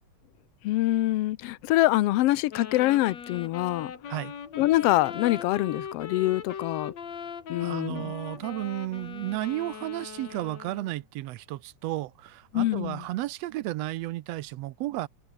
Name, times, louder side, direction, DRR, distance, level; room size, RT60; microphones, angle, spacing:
voice 1, 0.6-3.9 4.6-6.9 7.5-8.1 12.5-13.0, left 17 dB, 80° left, 1.4 m, -25 dB
Wind instrument woodwind instrument, 2.5-11.0, left 7 dB, 60° left, 3.8 m, -40 dB
voice 2, 7.6-15.1, right 16 dB, 75° right, 1.6 m, -33 dB
omnidirectional pair, 3.5 m